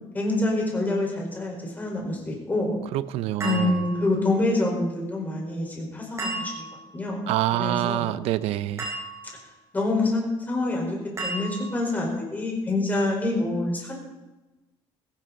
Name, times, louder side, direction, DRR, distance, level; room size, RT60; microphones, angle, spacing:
voice 1, 0.1-2.8 3.4-6.7 6.9-7.2 7.5-8.1 9.7-11.0 11.2-13.9, left 2 dB, 15° left, -1 dB, 4.8 m, -26 dB
voice 2, 2.9-3.8 7.3-8.9, right 14 dB, 90° right, 15 dB, 0.7 m, -26 dB
sound 1, 3.4-4.3 6.2-6.9 8.8-9.5 11.2-12.0, right 3 dB, 30° right, 6.0 m, -34 dB
17.5 x 16.5 x 4.1 m, 1.1 s
cardioid pair, 160°, 10 cm